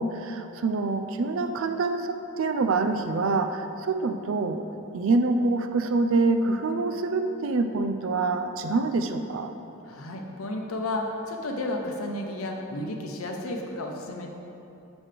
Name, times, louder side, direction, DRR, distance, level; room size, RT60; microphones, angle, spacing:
voice 1, 0.0-4.6 4.9-9.5, right 3 dB, 70° right, 7 dB, 0.4 m, -26 dB
voice 2, 9.8-14.3, left 1 dB, 90° left, 2 dB, 0.7 m, -32 dB
7.4 x 6.1 x 3.4 m, 3.0 s
head